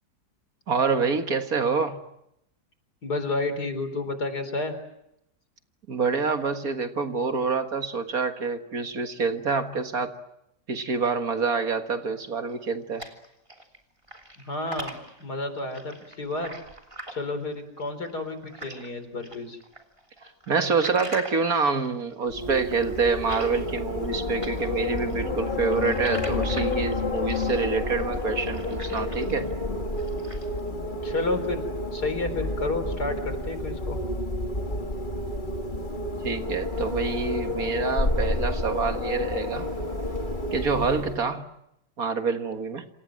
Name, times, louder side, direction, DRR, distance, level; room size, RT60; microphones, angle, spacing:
voice 1, 0.7-2.0 5.9-10.2 10.7-13.1 20.5-29.5 36.2-39.7 40.5-41.5 42.0-42.9, right 4 dB, 60° right, 6 dB, 2.1 m, -26 dB
voice 2, 3.0-4.7 14.4-16.5 17.1-19.6 31.0-31.6 31.9-34.0, left 2 dB, 70° left, 9 dB, 4.7 m, -30 dB
sound 1, 12.5-13.8 14.0-18.9 19.2-24.1 24.4-29.5 29.9-30.6, right 1 dB, 15° right, 3.2 m, -43 dB
Wind, 22.3-41.3, left 2 dB, 30° left, 2.5 m, -30 dB
27.5 x 27.0 x 7.7 m, 0.83 s
omnidirectional pair, 1.8 m